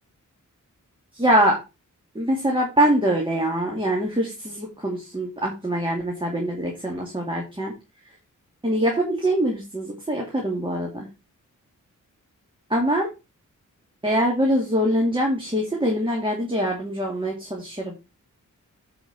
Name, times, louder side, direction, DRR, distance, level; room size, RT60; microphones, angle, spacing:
voice 1, 1.2-1.6 2.1-7.7 8.6-11.1 12.7-13.1 14.0-17.9, right 1 dB, 15° right, -1 dB, 2.5 m, -23 dB
9.6 x 5.1 x 4.6 m, 0.26 s
wide cardioid pair, 100°, 32 cm